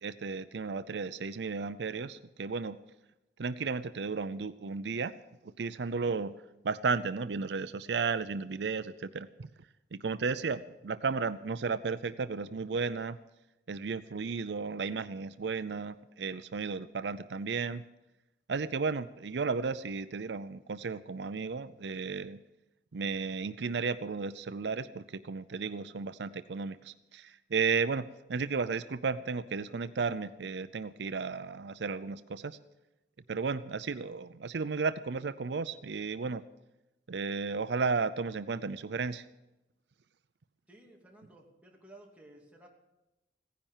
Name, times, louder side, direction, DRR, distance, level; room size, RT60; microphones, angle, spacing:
voice 1, 0.0-2.8 3.4-5.1 5.4-6.3 6.6-9.5 9.9-13.2 13.7-17.8 18.5-22.4 22.9-32.6 33.3-36.4 37.1-39.2, right 4 dB, 80° right, 14 dB, 0.5 m, -34 dB
voice 2, 40.7-42.7, right 1 dB, 10° right, -1 dB, 2.7 m, -55 dB
16.5 x 10.5 x 7.3 m, 0.98 s
head